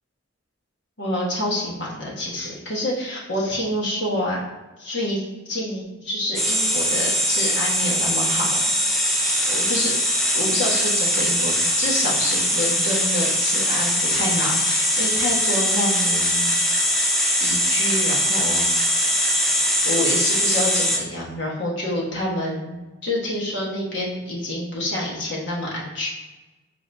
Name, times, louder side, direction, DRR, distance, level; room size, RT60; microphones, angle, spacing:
voice 1, 1.0-4.4 4.8-8.5 9.5-10.0 10.3-16.8 17.4-18.9 19.8-26.1, left 1 dB, 60° left, -4 dB, 1.2 m, -27 dB
sound 1, 6.3-21.0, equal, ahead, 0.4 m, -21 dB
4.8 x 2.6 x 3.4 m, 1.1 s
head